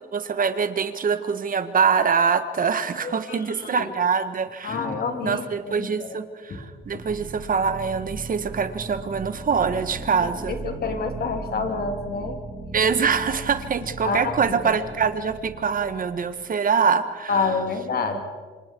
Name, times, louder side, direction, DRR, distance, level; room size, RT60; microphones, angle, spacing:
voice 1, 0.1-4.8 5.2-10.6 12.7-17.6, right 6 dB, 45° right, 11 dB, 1.6 m, -24 dB
voice 2, 3.0-3.9 4.6-6.2 6.5-6.6 10.5-12.4 14.0-14.4 14.6-14.7 17.3-18.2, left 4 dB, 50° left, 4 dB, 3.4 m, -28 dB
sound 1, 6.7-16.5, right 2 dB, 20° right, 4.1 m, -38 dB
27.5 x 26.0 x 4.7 m, 1.5 s
cardioid pair, 90°, 20 cm